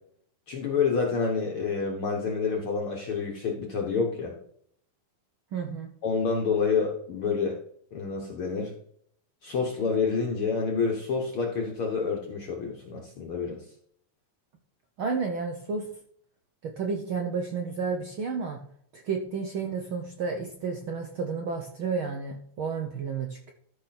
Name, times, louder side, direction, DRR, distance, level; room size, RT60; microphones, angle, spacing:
voice 1, 0.5-4.3 6.0-7.6 7.9-8.7 9.4-13.6, left 5 dB, 55° left, 0 dB, 1.8 m, -28 dB
voice 2, 5.5-5.9 15.0-15.9 16.6-18.6 18.9-23.5, right 5 dB, 65° right, 3 dB, 1.3 m, -31 dB
13.0 x 6.3 x 4.3 m, 0.64 s
omnidirectional pair, 3.5 m